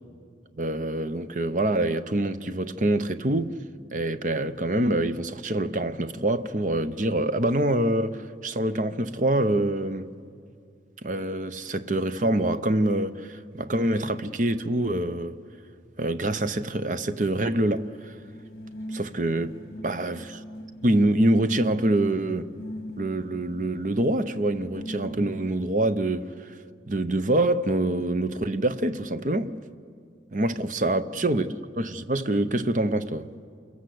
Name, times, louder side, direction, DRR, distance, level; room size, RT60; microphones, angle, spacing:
voice 1, 0.5-3.6 3.9-10.1 11.0-15.4 16.0-18.1 18.9-19.5 19.8-20.4 20.8-22.5 23.0-26.5 26.9-29.6 30.3-33.3, right 1 dB, 45° right, 0.8 m, -25 dB
sound 1, 17.2-25.8, equal, 55° left, 1.4 m, -41 dB
28.5 x 22.5 x 7.9 m
head